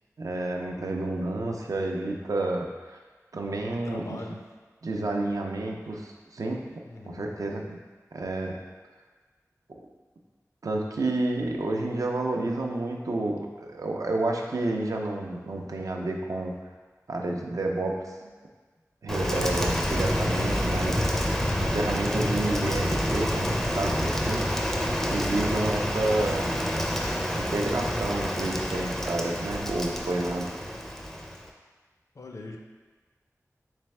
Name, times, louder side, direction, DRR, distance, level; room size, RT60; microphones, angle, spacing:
voice 1, 0.2-3.0 3.3-4.2 4.8-6.6 7.1-7.8 8.1-8.6 10.6-16.5 17.1-18.3 19.0-21.3 21.6-24.5 25.1-26.5 27.3-30.5, right 2 dB, 70° right, 1 dB, 0.5 m, -30 dB
voice 2, 3.7-4.4 6.9-7.3 32.1-32.6, left 2 dB, 60° left, 2 dB, 0.4 m, -41 dB
Rain, 19.1-31.5, equal, 5° left, 0.4 m, -28 dB
3.4 x 3.3 x 3.2 m, 1.4 s
wide cardioid pair, 50°, 6 cm